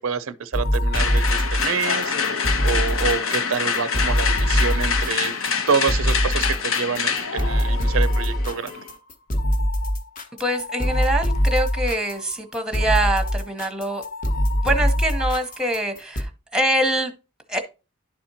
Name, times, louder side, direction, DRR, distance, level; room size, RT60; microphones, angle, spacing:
voice 1, 0.0-5.3 5.7-8.8, right 5 dB, 65° right, 0.5 m, -27 dB
sound 1, 0.5-16.2, equal, 35° left, 1.0 m, -23 dB
sound 2, 0.9-8.9, left 6 dB, 65° left, 0.9 m, -26 dB
voice 2, 10.4-14.0 14.6-17.1 17.5-17.6, right 1 dB, 5° right, 0.9 m, -24 dB
11.0 x 4.3 x 2.8 m
head